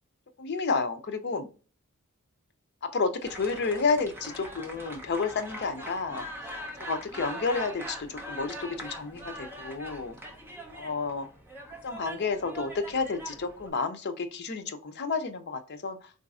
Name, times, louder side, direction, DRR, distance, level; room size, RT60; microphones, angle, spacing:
voice 1, 0.4-1.5 2.8-6.2 6.8-10.2 10.7-11.3 11.8-16.1, left 4 dB, 50° left, 7 dB, 0.5 m, -31 dB
sound 1, 3.2-13.7, right 1 dB, 10° right, 0.6 m, -42 dB
4.0 x 2.5 x 2.3 m, 0.35 s
head